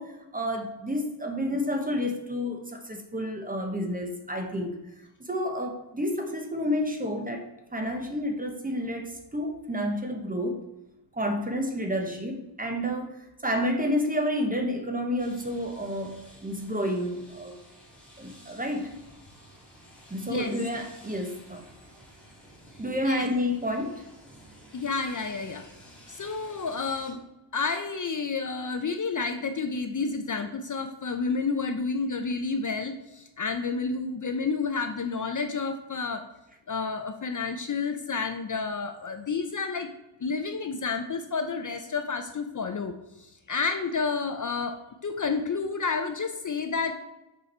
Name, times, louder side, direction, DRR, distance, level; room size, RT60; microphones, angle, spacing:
voice 1, 0.0-4.7 5.2-7.4 7.7-10.6 11.1-13.1 13.4-17.6 18.2-19.0 20.1-21.6 22.8-24.0, equal, 20° right, 4 dB, 1.0 m, -30 dB
sound 1, 15.2-27.1, equal, 5° left, 2.5 m, -52 dB
voice 2, 24.7-25.7 26.1-27.2 27.5-36.2 36.7-39.9 40.2-46.9, left 4 dB, 40° left, 7 dB, 0.6 m, -30 dB
6.8 x 5.1 x 4.3 m, 0.96 s
wide cardioid pair, 125°, 47 cm